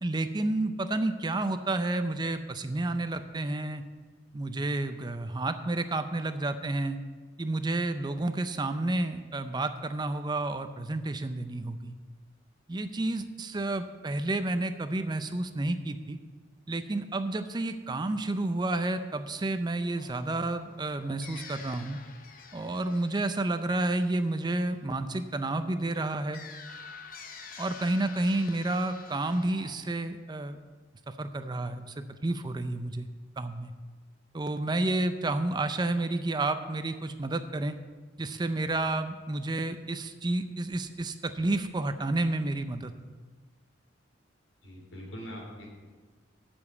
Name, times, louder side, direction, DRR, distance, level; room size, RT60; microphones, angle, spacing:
voice 1, 0.0-3.8 4.3-7.0 7.4-11.9 12.7-16.2 16.7-22.0 22.5-26.4 27.6-30.6 31.2-33.1 33.4-33.7 34.3-37.8 38.2-42.9, right 2 dB, 20° right, 10 dB, 0.5 m, -30 dB
sound 1, 19.9-24.8 26.3-29.8, left 5 dB, 45° left, 0.9 m, -48 dB
voice 2, 44.6-45.7, equal, 85° left, -2 dB, 3.6 m, -43 dB
8.3 x 7.1 x 8.3 m, 1.4 s
head